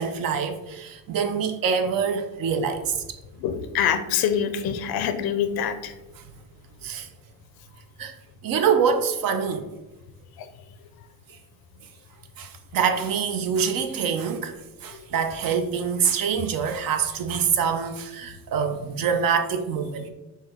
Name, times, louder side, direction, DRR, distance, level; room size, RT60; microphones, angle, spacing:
voice 1, 0.0-3.2 6.2-6.3 6.8-7.1 8.0-8.1 8.4-9.7 12.4-14.5 14.8-20.1, right 6 dB, 55° right, 0.6 m, -25 dB
voice 2, 3.4-5.9, left 8 dB, 60° left, 0.5 m, -25 dB
6.2 x 2.2 x 3.4 m
cardioid pair, 115°, 41 cm